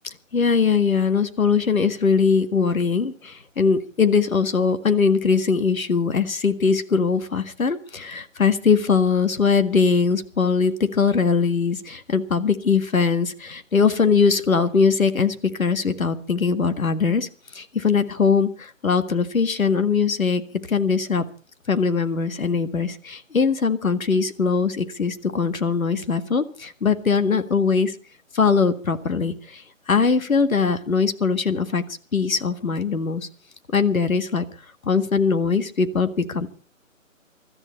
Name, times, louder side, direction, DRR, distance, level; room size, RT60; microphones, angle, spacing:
voice 1, 0.3-17.3 17.5-20.4 20.7-21.3 21.7-28.0 28.3-29.6 29.9-31.8 32.1-33.3 33.7-34.4 34.8-36.5, left 5 dB, 90° left, 10 dB, 1.8 m, -21 dB
22.5 x 13.5 x 4.2 m, 0.37 s
hypercardioid pair, 170°, 40 cm